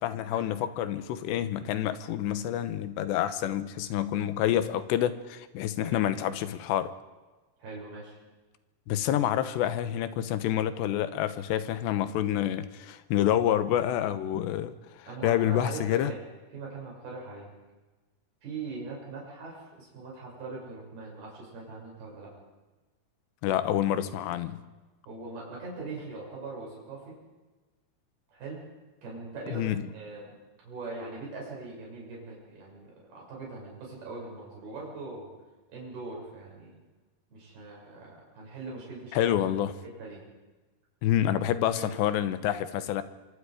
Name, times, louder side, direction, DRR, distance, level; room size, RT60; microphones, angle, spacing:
voice 1, 0.0-6.9 8.9-16.1 23.4-24.6 29.5-29.8 39.1-39.7 41.0-43.0, left 11 dB, 90° left, 12 dB, 3.3 m, -28 dB
voice 2, 7.6-8.2 15.0-16.2 16.5-17.5 18.4-22.3 25.1-27.1 28.3-28.6 29.0-35.3 35.7-36.8 37.3-39.3 39.8-40.2 41.7-41.8, right 3 dB, 60° right, -3 dB, 8.5 m, -41 dB
25.0 x 24.5 x 5.1 m, 1.2 s
omnidirectional pair, 4.9 m